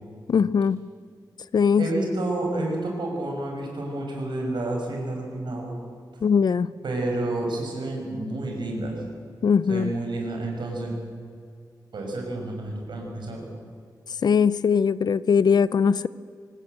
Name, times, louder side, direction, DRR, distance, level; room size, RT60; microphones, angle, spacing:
voice 1, 0.3-0.8 1.5-1.9 6.2-6.7 9.4-9.9 14.2-16.1, left 6 dB, 65° left, 17 dB, 0.6 m, -20 dB
voice 2, 1.8-5.8 6.8-9.0 9.7-11.0 11.9-13.5, right 2 dB, 80° right, 1 dB, 6.1 m, -29 dB
25.0 x 19.0 x 7.9 m, 2.2 s
wide cardioid pair, 160°, 8 cm